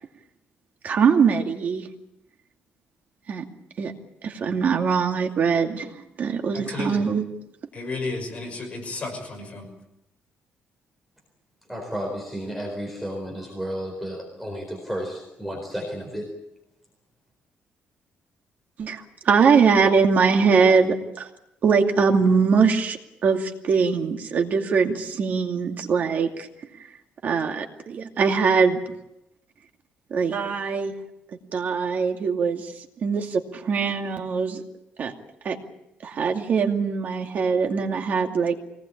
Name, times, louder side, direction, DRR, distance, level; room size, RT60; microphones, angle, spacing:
voice 1, 0.8-1.9 3.3-3.4 3.8-3.9 4.2-5.9 6.2-7.2 18.8-21.3 21.6-26.5 27.2-28.8 30.1-30.9 31.5-32.7 33.0-34.6 35.0-35.1 35.4-35.6 36.0-38.5, right 5 dB, 45° right, 4 dB, 2.5 m, -22 dB
voice 2, 6.5-7.0 7.7-9.7, left 3 dB, 35° left, 2 dB, 6.1 m, -32 dB
voice 3, 11.7-16.3, equal, ahead, 0 dB, 4.3 m, -32 dB
24.5 x 19.0 x 8.7 m, 0.86 s
cardioid pair, 160°, 4 cm